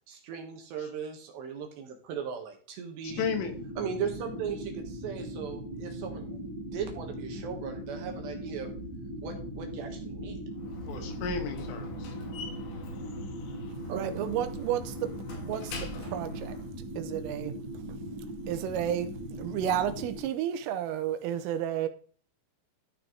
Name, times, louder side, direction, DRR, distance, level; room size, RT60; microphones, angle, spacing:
voice 1, 0.1-3.3 3.8-6.4 6.7-8.7 9.2-10.4 13.9-14.2, right 6 dB, 70° right, 3.2 m, -38 dB
voice 2, 3.0-3.5 10.9-12.1, left 6 dB, 80° left, 4.1 m, -34 dB
sound 1, 3.1-20.2, right 1 dB, 40° right, 3.7 m, -39 dB
Slam, 10.5-16.7, left 2 dB, 65° left, 4.0 m, -43 dB
voice 3, 13.9-15.1 15.4-16.6 17.0-17.6 18.5-21.9, right 10 dB, 90° right, 3.5 m, -32 dB
14.0 x 6.1 x 3.9 m
omnidirectional pair, 5.8 m